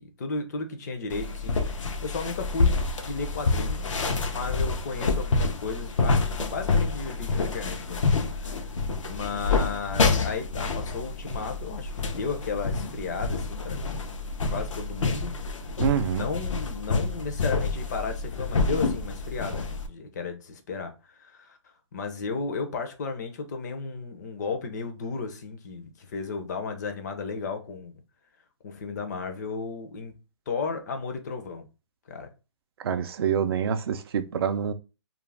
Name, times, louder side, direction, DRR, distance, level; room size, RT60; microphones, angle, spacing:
voice 1, 0.0-2.8 3.0-4.0 4.2-8.0 8.4-8.6 9.0-13.8 14.5-15.3 16.1-21.6 21.9-27.9 28.6-30.2 30.5-31.7 32.1-32.3, left 4 dB, 35° left, 0.5 m, -34 dB
sound 1, 1.1-19.9, left 3 dB, 80° left, 0.6 m, -28 dB
voice 2, 15.8-16.3 32.8-34.7, right 8 dB, 50° right, 0.4 m, -26 dB
2.4 x 2.0 x 3.2 m
hypercardioid pair, 160°, 16 cm